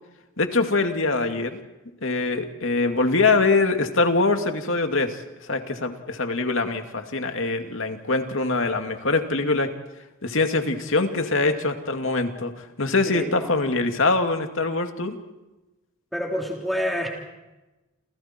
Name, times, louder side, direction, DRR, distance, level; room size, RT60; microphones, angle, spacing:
voice 1, 0.4-1.6 2.0-9.7 10.2-15.2, left 3 dB, 65° left, 5 dB, 2.4 m, -23 dB
voice 2, 13.1-13.5 16.1-17.1, equal, ahead, -1 dB, 3.4 m, -27 dB
29.0 x 28.5 x 4.5 m, 1.1 s
head